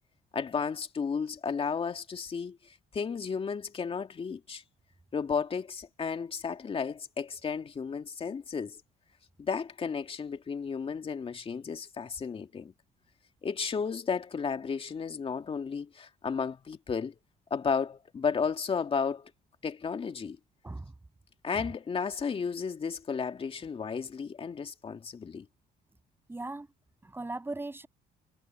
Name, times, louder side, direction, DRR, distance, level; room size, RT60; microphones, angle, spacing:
voice 1, 0.3-2.6 2.9-4.6 5.1-8.8 9.4-12.7 13.4-17.2 17.5-19.3 19.6-20.4 21.4-25.5, left 6 dB, 35° left, 2.3 m, -33 dB
voice 2, 26.3-26.7 27.0-27.9, right 2 dB, 15° right, 6.2 m, -38 dB
cardioid pair, 110°, 17 cm